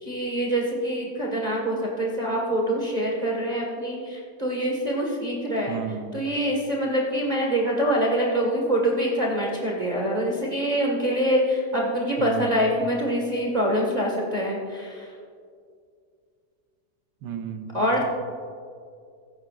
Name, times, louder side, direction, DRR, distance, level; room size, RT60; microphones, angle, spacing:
voice 1, 0.0-5.8 6.1-15.1 17.7-18.0, equal, 25° right, -2 dB, 1.7 m, -25 dB
voice 2, 5.7-6.2 12.2-12.9 17.2-18.0, right 7 dB, 90° right, 8 dB, 1.4 m, -34 dB
15.5 x 15.0 x 2.5 m, 2.2 s
omnidirectional pair, 1.8 m